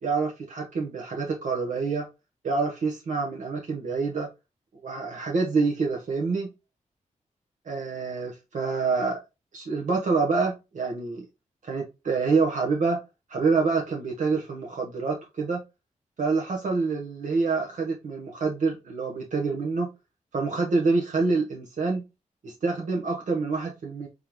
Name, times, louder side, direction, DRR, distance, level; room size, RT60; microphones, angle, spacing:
voice 1, 0.0-2.1 2.4-4.3 4.8-6.5 7.7-9.2 9.5-11.2 11.6-13.0 13.3-15.6 16.2-19.9 20.3-22.0 22.4-24.1, right 4 dB, 70° right, -1 dB, 1.0 m, -27 dB
3.7 x 3.6 x 2.9 m, 0.25 s
wide cardioid pair, 125°, 13 cm